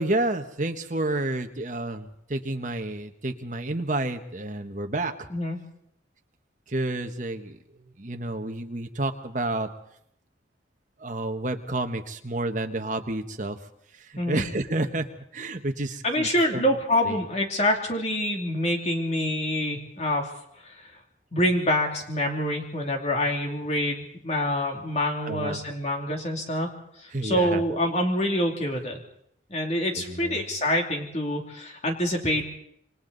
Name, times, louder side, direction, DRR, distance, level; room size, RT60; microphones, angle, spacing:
voice 1, 0.0-5.1 6.7-7.6 8.0-9.7 11.0-13.6 14.1-15.0 15.3-16.7 17.0-17.2 25.2-25.6 27.1-27.6 29.9-30.4, right 2 dB, 40° right, 6 dB, 1.4 m, -30 dB
voice 2, 16.0-20.3 20.6-20.7 21.3-26.7 27.0-29.0 29.5-32.5, left 1 dB, 35° left, 1 dB, 2.9 m, -26 dB
27.5 x 23.5 x 4.1 m, 0.74 s
head